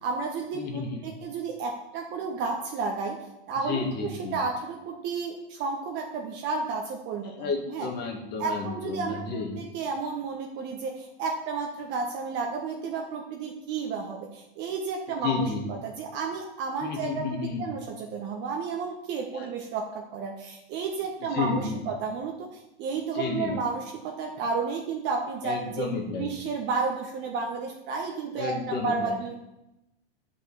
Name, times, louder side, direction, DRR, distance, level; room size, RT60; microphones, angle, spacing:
voice 1, 0.0-3.2 3.5-7.9 8.4-25.9 26.2-29.3, right 4 dB, 35° right, 1 dB, 1.3 m, -32 dB
voice 2, 0.5-1.0 3.6-4.4 7.2-9.6 15.2-15.7 16.8-17.7 19.3-19.5 21.2-21.8 23.1-23.5 25.4-26.3 28.3-29.2, left 4 dB, 30° left, 2 dB, 2.2 m, -31 dB
10.0 x 5.6 x 7.1 m, 0.91 s
hypercardioid pair, 130°, 30 cm